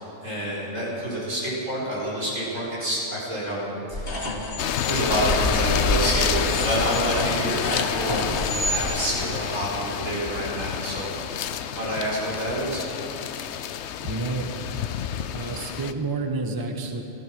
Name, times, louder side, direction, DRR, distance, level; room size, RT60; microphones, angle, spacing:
voice 1, 0.0-4.1 4.9-7.6 7.9-8.3 8.6-11.1 11.7-12.9, right 1 dB, 85° right, -7 dB, 5.3 m, -28 dB
sound 1, 3.9-8.8, left 1 dB, 50° left, 1.7 m, -28 dB
sound 2, 4.6-15.9, left 9 dB, 70° left, 0.8 m, -29 dB
voice 2, 14.0-14.5 15.3-17.0, right 3 dB, 20° right, 4 dB, 0.9 m, -29 dB
15.0 x 15.0 x 6.1 m, 2.9 s
omnidirectional pair, 1.3 m